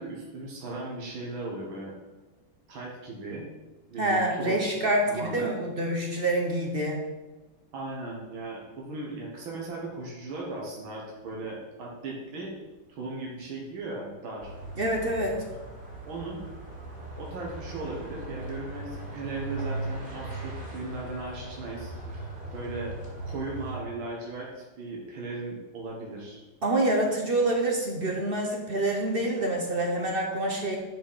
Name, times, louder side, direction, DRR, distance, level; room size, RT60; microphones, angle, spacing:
voice 1, 0.0-1.9 2.7-3.5 3.9-4.6 5.1-5.5 7.7-12.5 12.9-14.5 16.1-16.4 17.2-21.9 22.5-22.9 23.2-26.4, right 2 dB, 85° right, -3 dB, 2.2 m, -37 dB
voice 2, 4.0-7.0 14.8-15.4 26.6-30.8, right 1 dB, 40° right, 0 dB, 0.9 m, -26 dB
sound 1, 14.4-23.8, right 2 dB, 25° right, 2.4 m, -38 dB
10.0 x 4.5 x 5.6 m, 1.2 s
omnidirectional pair, 2.1 m